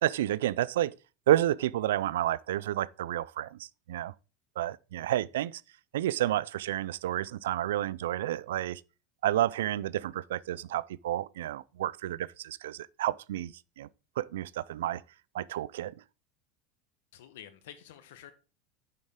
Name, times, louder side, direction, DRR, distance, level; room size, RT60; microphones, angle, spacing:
voice 1, 0.0-0.9 1.3-4.1 4.6-5.6 5.9-8.8 9.2-13.9 14.2-15.0 15.3-15.9, right 13 dB, 85° right, 0.3 m, -30 dB
voice 2, 17.1-18.3, left 10 dB, 80° left, 1.1 m, -49 dB
6.5 x 6.5 x 3.6 m
supercardioid pair, 110°, 0 cm